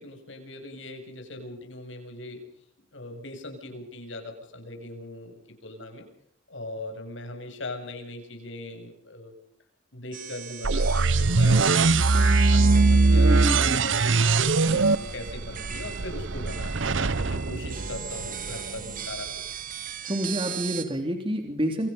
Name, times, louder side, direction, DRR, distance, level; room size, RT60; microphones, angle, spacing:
voice 1, 0.0-2.4 2.9-5.3 5.6-6.1 6.5-9.3 9.9-16.7 17.1-19.5, left 2 dB, 75° left, 4 dB, 7.3 m, -40 dB
sound 1, 10.1-20.8, right 7 dB, 45° right, 3.0 m, -38 dB
sound 2, 10.6-18.5, right 3 dB, 75° right, 0.9 m, -21 dB
voice 2, 13.1-13.8 20.1-21.9, equal, 25° right, 4 dB, 3.3 m, -28 dB
28.5 x 25.0 x 5.5 m, 0.67 s
head